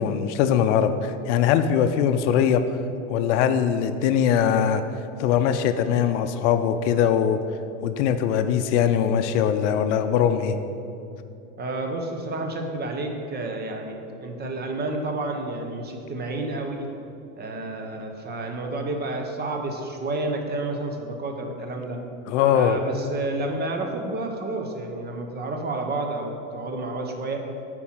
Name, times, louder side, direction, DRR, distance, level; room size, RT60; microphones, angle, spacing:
voice 1, 0.0-2.6 3.1-4.8 5.2-7.4 7.8-10.6 22.3-22.8, left 8 dB, 65° left, 9 dB, 0.6 m, -21 dB
voice 2, 11.6-16.9 17.4-22.0 22.5-27.4, right 2 dB, 25° right, 3 dB, 1.0 m, -30 dB
8.4 x 4.5 x 5.8 m, 2.7 s
supercardioid pair, 110°, 39 cm